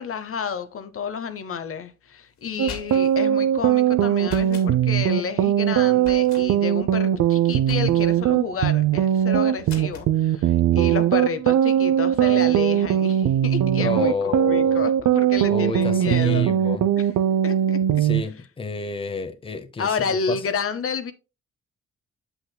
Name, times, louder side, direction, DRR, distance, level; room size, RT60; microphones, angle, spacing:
voice 1, 0.0-16.5 17.0-17.1 17.4-17.8 19.8-21.1, left 6 dB, 50° left, 0.8 m, -30 dB
sound 1, 2.4-3.2 4.2-4.7 6.0-6.5 7.7-8.2 9.7-10.1, left 4 dB, 80° left, 2.6 m, -40 dB
sound 2, 2.6-18.2, right 10 dB, 80° right, 0.6 m, -20 dB
voice 2, 13.8-14.8 15.5-16.8 18.0-20.4, left 3 dB, 20° left, 0.8 m, -29 dB
7.9 x 7.9 x 2.2 m
wide cardioid pair, 155°, 29 cm